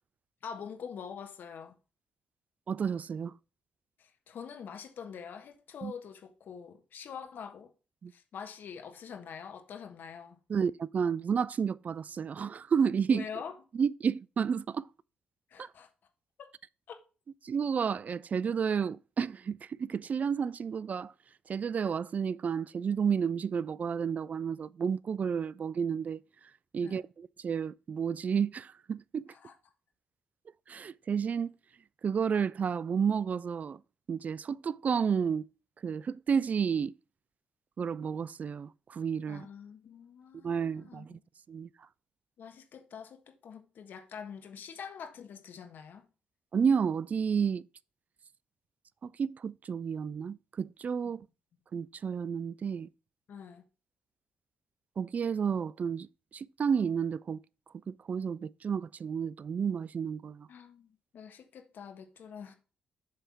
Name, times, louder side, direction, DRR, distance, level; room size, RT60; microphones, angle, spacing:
voice 1, 0.4-1.8 4.0-7.7 8.1-10.4 13.1-13.5 15.5-15.9 16.4-16.5 16.9-17.0 26.8-27.0 29.3-29.5 39.3-41.2 42.4-46.1 51.0-51.1 53.3-53.6 60.5-62.5, left 7 dB, 65° left, 1.3 m, -45 dB
voice 2, 2.7-3.3 5.8-5.9 8.0-8.1 10.5-13.2 13.7-14.9 15.6-15.7 17.4-21.1 21.5-26.2 26.7-29.3 30.7-31.5 32.0-33.8 34.1-35.5 35.8-36.9 37.8-39.5 40.3-41.2 41.5-41.7 46.5-47.6 49.0-51.3 51.7-52.9 55.0-56.1 56.3-57.4 57.9-60.5, right 6 dB, 45° right, 0.3 m, -31 dB
7.8 x 3.5 x 5.7 m
supercardioid pair, 50°, 4 cm